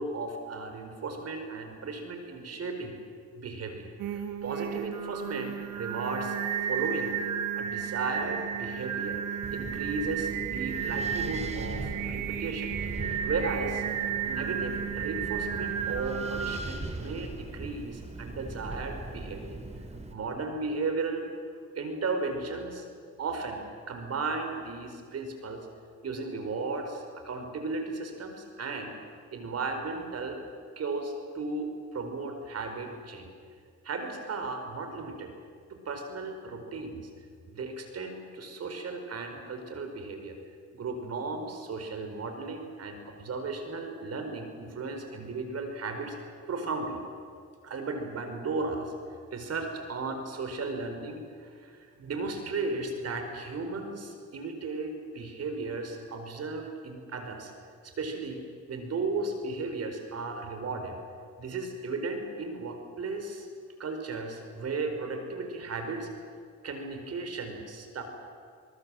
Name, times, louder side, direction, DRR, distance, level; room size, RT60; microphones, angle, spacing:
voice 1, 0.0-2.9 3.4-6.4 6.7-7.2 7.6-9.2 9.5-13.8 14.2-19.6 20.1-21.3 21.7-22.8 23.2-25.6 26.0-29.0 29.3-30.4 30.8-33.3 33.8-35.3 35.7-37.0 37.4-40.4 40.7-46.1 46.5-47.0 47.6-48.9 49.3-57.5 57.8-58.4 58.7-60.9 61.4-63.5 63.8-66.1 66.6-68.0, right 3 dB, 55° right, 6 dB, 4.6 m, -35 dB
Singing, 4.0-16.6, right 8 dB, 90° right, 1.7 m, -33 dB
Wind, 9.4-20.1, right 2 dB, 20° right, 3.2 m, -40 dB
24.0 x 22.0 x 7.7 m, 2.1 s
cardioid pair, 90°, 30 cm